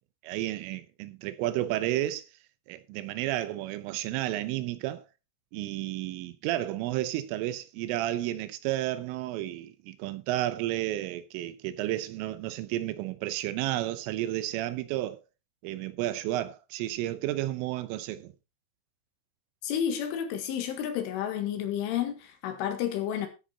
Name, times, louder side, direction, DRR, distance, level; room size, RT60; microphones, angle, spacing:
voice 1, 0.2-2.2 2.7-5.0 5.5-15.2 15.6-18.3, right 14 dB, 85° right, 3.3 m, -32 dB
voice 2, 19.6-23.3, left 9 dB, 75° left, 4.1 m, -31 dB
13.5 x 8.0 x 4.1 m
omnidirectional pair, 5.8 m